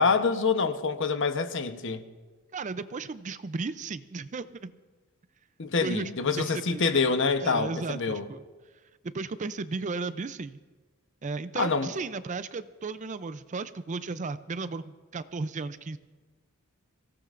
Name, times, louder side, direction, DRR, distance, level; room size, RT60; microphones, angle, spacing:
voice 1, 0.0-2.0 5.6-8.2 11.6-11.9, left 4 dB, 55° left, 0.9 m, -26 dB
voice 2, 2.5-4.7 5.8-6.1 6.4-7.0 7.4-8.4 9.1-10.6 11.2-16.0, right 4 dB, 35° right, 0.4 m, -35 dB
24.5 x 16.5 x 2.5 m
head